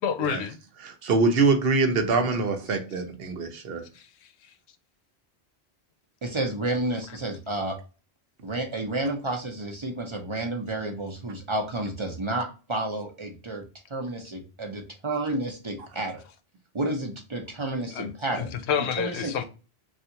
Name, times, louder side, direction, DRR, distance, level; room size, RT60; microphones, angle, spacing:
voice 1, 0.0-0.6 3.9-4.5 17.8-19.4, left 7 dB, 90° left, 0.8 m, -30 dB
voice 2, 0.8-3.8, right 3 dB, 65° right, 0.9 m, -24 dB
voice 3, 6.2-7.8 8.4-13.6 13.9-16.2 16.7-18.6 19.0-19.4, right 2 dB, 35° right, 0.5 m, -31 dB
3.4 x 2.4 x 2.7 m
omnidirectional pair, 1.1 m